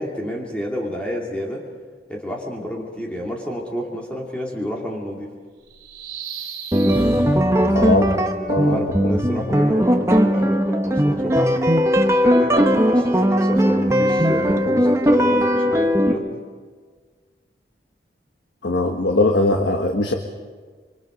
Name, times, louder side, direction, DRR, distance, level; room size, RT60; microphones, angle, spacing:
voice 1, 0.0-1.6 2.1-5.3 8.6-11.5 12.2-16.2, equal, 5° left, -2 dB, 2.6 m, -29 dB
sound 1, 5.7-8.5, right 2 dB, 60° right, 3.6 m, -33 dB
sound 2, 6.7-16.1, equal, 15° right, 1.1 m, -18 dB
voice 2, 7.7-8.1 8.5-9.1 18.6-20.1, left 2 dB, 80° left, 3 dB, 1.4 m, -20 dB
27.5 x 24.5 x 5.2 m, 1.5 s
head